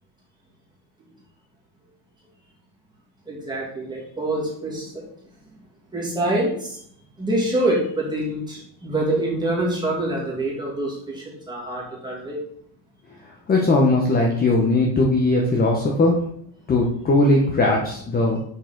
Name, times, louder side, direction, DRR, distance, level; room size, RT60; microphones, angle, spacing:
voice 1, 3.3-5.0 5.9-6.8 7.2-12.4, right 1 dB, 10° right, -5 dB, 2.3 m, -25 dB
voice 2, 13.5-16.2 16.7-18.4, left 2 dB, 20° left, -1 dB, 0.8 m, -19 dB
6.7 x 4.8 x 3.8 m, 0.67 s
cardioid pair, 140°, 46 cm